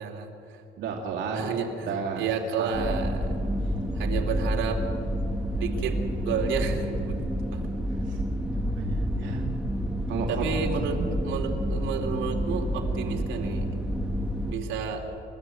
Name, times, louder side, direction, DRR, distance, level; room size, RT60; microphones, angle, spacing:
voice 1, 0.0-0.6 1.3-3.3 3.9-4.8 5.6-7.6 10.3-13.7 14.5-15.1, right 6 dB, 85° right, 2 dB, 2.9 m, -31 dB
voice 2, 0.8-2.3 2.6-3.0 8.0-8.2 8.5-9.5 10.1-10.4 10.9-11.1, right 4 dB, 70° right, 0 dB, 2.4 m, -33 dB
sound 1, 2.7-14.5, equal, 5° right, 1.2 m, -29 dB
28.5 x 14.0 x 7.8 m, 2.6 s
cardioid pair, 155°, 20 cm